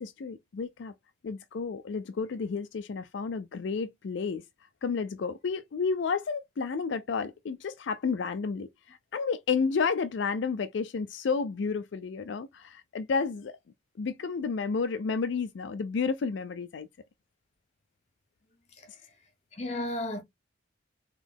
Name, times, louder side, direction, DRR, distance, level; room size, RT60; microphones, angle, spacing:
voice 1, 0.0-0.9 1.2-4.4 4.8-13.5 14.0-16.9, left 5 dB, 65° left, 0.4 m, -31 dB
voice 2, 19.5-20.2, left 1 dB, 35° left, 1.3 m, -34 dB
4.0 x 3.1 x 3.4 m
head